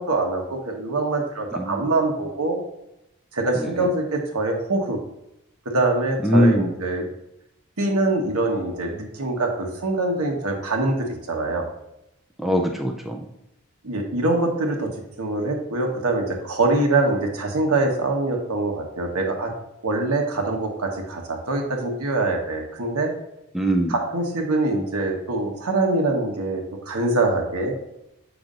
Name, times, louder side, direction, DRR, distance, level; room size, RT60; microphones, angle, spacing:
voice 1, 0.0-2.6 3.3-5.0 5.6-7.1 7.8-11.7 13.8-19.5 19.8-23.1 23.9-27.7, right 2 dB, 85° right, 1 dB, 1.3 m, -24 dB
voice 2, 3.6-3.9 6.2-6.7 12.4-13.3 23.5-23.9, equal, ahead, 2 dB, 0.4 m, -21 dB
7.1 x 6.0 x 2.6 m, 0.85 s
head